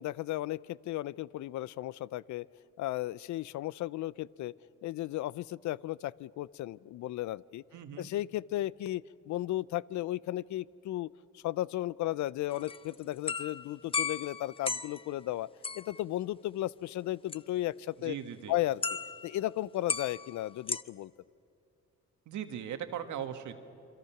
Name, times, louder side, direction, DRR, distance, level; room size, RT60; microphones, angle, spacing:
voice 1, 0.0-2.5 2.8-4.5 4.8-7.6 8.0-15.5 15.8-18.2 18.5-18.8 19.2-21.1, left 15 dB, 70° left, 21 dB, 0.5 m, -35 dB
voice 2, 7.7-8.1 18.0-18.5 22.3-23.5, right 9 dB, 75° right, 7 dB, 1.7 m, -38 dB
sound 1, 12.5-15.1 15.6-16.0 17.3-17.4 18.8-19.4 19.9-20.8, left 5 dB, 20° left, 0.6 m, -35 dB
27.5 x 24.0 x 5.9 m, 2.5 s
cardioid pair, 90°, 30 cm